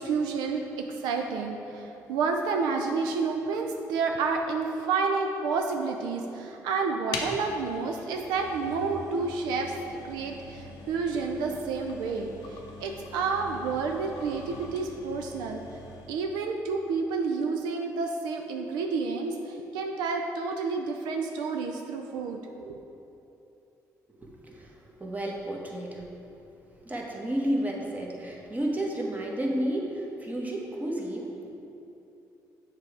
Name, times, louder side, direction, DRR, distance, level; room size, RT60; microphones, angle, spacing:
voice 1, 0.0-15.6 16.1-22.8, right 4 dB, 85° right, 3 dB, 0.4 m, -30 dB
sound 1, 7.1-16.2, left 3 dB, 90° left, 0.6 m, -43 dB
voice 2, 24.1-26.1 26.7-31.6, right 1 dB, 20° right, -1 dB, 1.2 m, -32 dB
6.6 x 3.4 x 4.9 m, 2.8 s
supercardioid pair, 60°, 7 cm